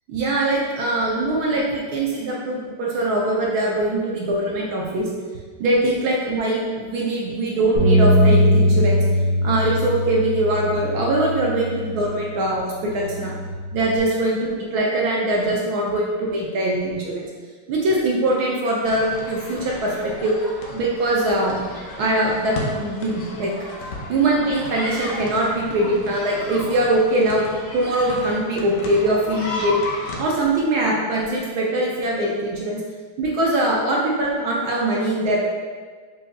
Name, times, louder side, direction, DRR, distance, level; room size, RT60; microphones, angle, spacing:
voice 1, 0.1-5.1 5.6-9.0 9.4-13.3 13.7-17.2 17.7-20.4 20.7-21.6 22.0-23.5 24.1-29.8 30.2-32.8 33.2-35.4, right 1 dB, 70° right, -3 dB, 0.9 m, -22 dB
Bass guitar, 7.8-12.2 12.8-14.0, equal, 50° right, 1.4 m, -20 dB
sound 1, 18.8-30.2, left 2 dB, 85° left, 0.7 m, -34 dB
5.2 x 2.6 x 2.2 m, 1.5 s
omnidirectional pair, 2.1 m